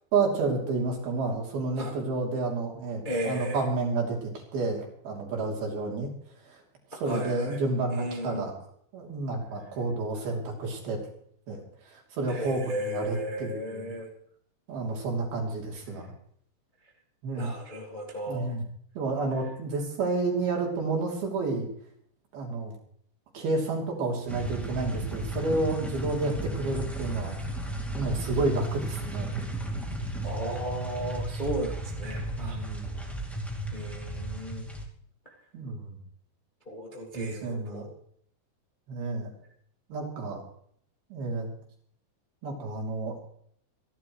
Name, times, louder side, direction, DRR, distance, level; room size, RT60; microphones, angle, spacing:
voice 1, 0.1-6.1 6.4-6.6 6.9-8.5 8.9-11.0 11.5-13.9 14.7-16.1 17.2-17.5 18.3-18.6 19.0-21.7 22.3-22.7 23.3-27.5 27.9-29.4 29.9-30.0 32.3-33.0 35.5-36.0 37.1-37.9 38.9-39.3 39.9-40.4 41.1-41.5 42.4-43.3, right 3 dB, 60° right, 0 dB, 4.8 m, -30 dB
voice 2, 3.0-3.6 6.9-7.6 7.9-8.5 12.3-14.1 17.3-18.5 30.2-32.6 33.7-34.6 36.6-37.9, equal, 90° left, -2 dB, 0.4 m, -35 dB
sound 1, 24.3-34.8, right 1 dB, ahead, 0.5 m, -34 dB
27.5 x 11.0 x 3.1 m, 0.64 s
omnidirectional pair, 5.2 m